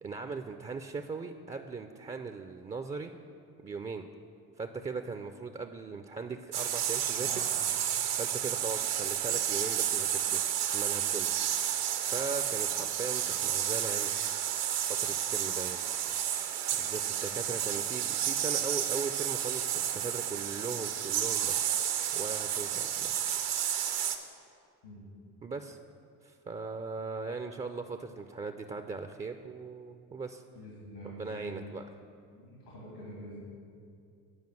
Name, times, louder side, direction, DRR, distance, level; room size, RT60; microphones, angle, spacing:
voice 1, 0.0-3.1 3.6-4.1 4.6-7.5 8.2-10.4 10.7-11.3 12.0-14.4 15.0-15.8 16.7-21.7 22.1-23.1 25.4-25.8 26.2-30.4 31.0-31.8, right 4 dB, 15° right, 7 dB, 0.3 m, -39 dB
sound 1, 6.5-24.2, right 10 dB, 80° right, 0.8 m, -31 dB
voice 2, 30.5-31.8 32.3-33.4, equal, 90° left, -5 dB, 2.5 m, -46 dB
9.7 x 5.1 x 7.6 m, 2.4 s
hypercardioid pair, 55°, 46 cm